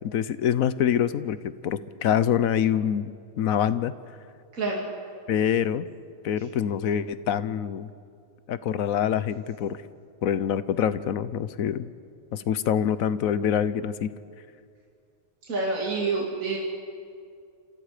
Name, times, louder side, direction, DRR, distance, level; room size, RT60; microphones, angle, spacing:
voice 1, 0.0-3.1 3.4-3.9 5.3-5.9 6.2-7.9 8.5-9.8 10.2-11.9 12.3-14.1, left 9 dB, 75° left, 15 dB, 1.2 m, -25 dB
voice 2, 4.5-4.8 15.5-16.6, right 3 dB, 70° right, -3 dB, 3.0 m, -27 dB
28.5 x 26.5 x 5.0 m, 2.3 s
omnidirectional pair, 1.5 m